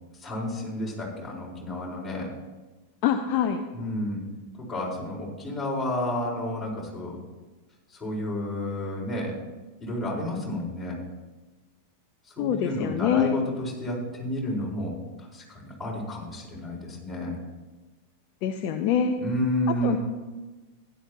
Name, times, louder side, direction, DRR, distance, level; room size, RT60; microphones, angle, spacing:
voice 1, 0.2-2.3 3.7-4.2 4.6-7.2 7.9-9.4 9.8-11.0 12.3-17.4 19.2-20.0, left 1 dB, 10° left, -5 dB, 4.3 m, -31 dB
voice 2, 3.0-3.7 12.4-13.4 18.4-19.2 19.7-20.0, left 9 dB, 45° left, 7 dB, 0.6 m, -25 dB
15.5 x 11.0 x 2.9 m, 1.2 s
figure-of-eight pair, 90°, 0 cm